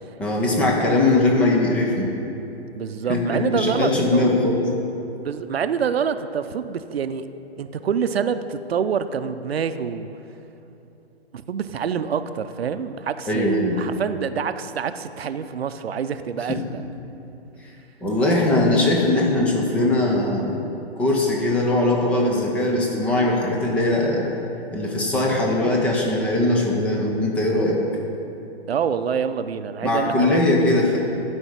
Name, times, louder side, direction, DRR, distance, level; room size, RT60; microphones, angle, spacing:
voice 1, 0.2-2.1 3.1-4.6 13.3-13.8 16.5-16.6 18.0-20.5 21.0-24.4 24.7-27.8 29.8-31.0, left 2 dB, 5° left, -1 dB, 0.4 m, -20 dB
voice 2, 2.7-4.2 5.2-7.3 7.6-10.1 11.3-16.8 28.7-30.4, right 7 dB, 70° right, 11 dB, 0.6 m, -26 dB
11.5 x 5.3 x 7.3 m, 3.0 s
figure-of-eight pair, 125°, 32 cm